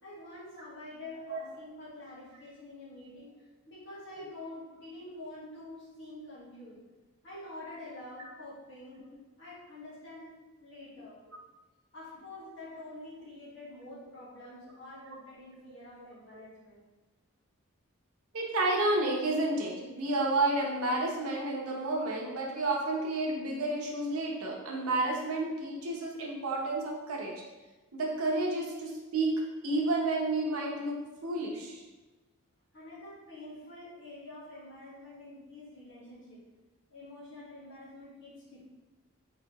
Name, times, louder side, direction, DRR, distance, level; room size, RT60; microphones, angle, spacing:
voice 1, 0.0-3.3 3.7-6.8 7.2-9.0 9.4-10.3 10.6-11.2 11.9-16.8 32.7-36.4 36.9-38.6, left 2 dB, 55° left, -7 dB, 1.5 m, -47 dB
voice 2, 18.3-27.4 27.9-31.8, right 2 dB, 90° right, -1 dB, 0.9 m, -31 dB
4.4 x 3.2 x 2.9 m, 1.2 s
head